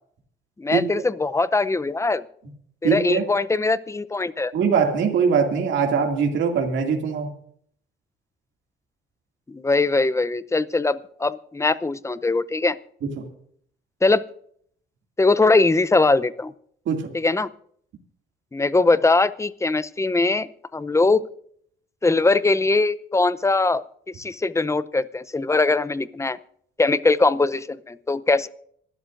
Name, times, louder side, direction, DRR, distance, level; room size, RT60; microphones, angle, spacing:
voice 1, 0.6-2.2 2.8-4.5 9.5-12.8 14.0-14.2 15.2-16.5 17.1-17.5 18.5-21.2 22.0-23.8 24.1-26.4 26.8-28.5, left 3 dB, 15° left, 14 dB, 0.7 m, -21 dB
voice 2, 2.8-3.2 4.5-7.3 13.2-13.3 16.9-17.1, right 6 dB, 75° right, 2 dB, 2.5 m, -22 dB
26.5 x 12.5 x 2.6 m, 0.64 s
cardioid pair, 90°, 20 cm